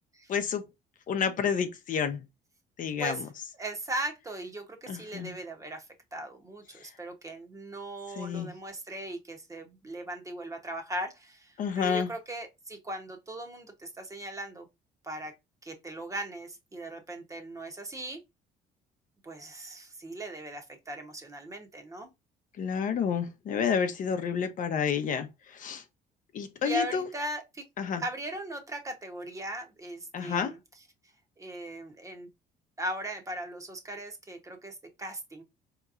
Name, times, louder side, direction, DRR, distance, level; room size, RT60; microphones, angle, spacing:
voice 1, 0.3-0.6 1.1-2.2 2.8-3.3 4.9-5.3 6.8-6.9 8.2-8.5 11.6-12.1 22.6-25.8 26.3-27.1 27.8-28.0 30.1-30.5, left 7 dB, 50° left, 0.7 m, -30 dB
voice 2, 3.6-5.9 6.1-14.7 15.0-15.3 15.6-18.2 19.2-22.1 26.6-27.6 28.0-30.6 31.4-32.3 32.8-35.4, right 1 dB, 20° right, 0.9 m, -38 dB
4.3 x 2.9 x 2.4 m
cardioid pair, 110°, 17 cm